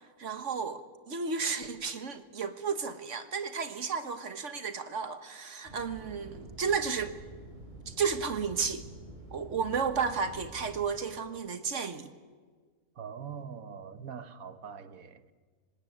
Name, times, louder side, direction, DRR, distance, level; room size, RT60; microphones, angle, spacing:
voice 1, 0.2-7.2 7.9-8.9 9.3-12.1, right 5 dB, 55° right, 1.7 m, -33 dB
sound 1, 5.6-10.9, right 2 dB, 30° right, 6.7 m, -48 dB
voice 2, 13.0-15.3, right 7 dB, 75° right, 1.5 m, -43 dB
25.5 x 19.5 x 9.3 m
omnidirectional pair, 1.5 m